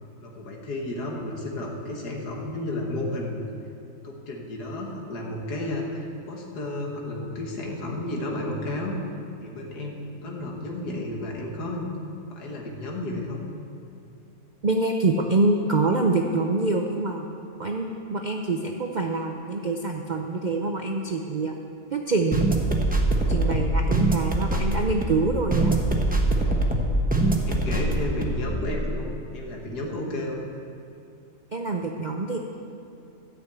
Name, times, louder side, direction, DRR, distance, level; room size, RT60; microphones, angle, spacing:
voice 1, 0.2-3.4 4.0-9.0 9.4-11.9 12.3-13.4 27.2-30.4, left 1 dB, 90° left, 0 dB, 2.0 m, -32 dB
voice 2, 14.6-17.3 17.6-21.5 21.9-22.6 23.3-25.7 31.5-32.4, right 3 dB, 65° right, 2 dB, 0.4 m, -25 dB
sound 1, 22.3-28.6, right 2 dB, 10° right, 0.7 m, -23 dB
13.0 x 6.1 x 8.1 m, 2.6 s
omnidirectional pair, 1.7 m